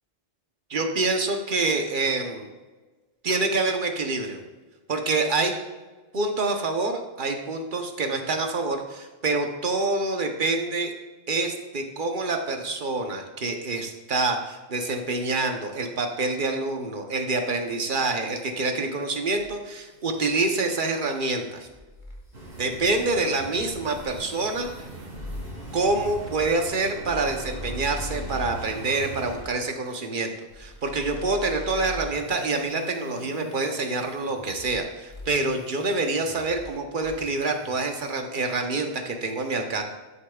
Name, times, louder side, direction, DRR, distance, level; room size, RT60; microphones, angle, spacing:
voice 1, 0.7-2.5 3.2-4.4 4.9-5.5 6.1-10.9 11.3-21.7 22.6-24.7 25.7-30.3 30.6-39.8, right 3 dB, 55° right, 4 dB, 1.0 m, -26 dB
sound 1, 19.4-24.2 25.1-29.6 30.5-34.8 35.1-36.7 37.0-38.2, left 1 dB, 50° left, 1.2 m, -42 dB
sound 2, 22.3-29.4, right 2 dB, 80° right, 2.4 m, -40 dB
12.0 x 6.6 x 2.3 m, 1.3 s
omnidirectional pair, 1.1 m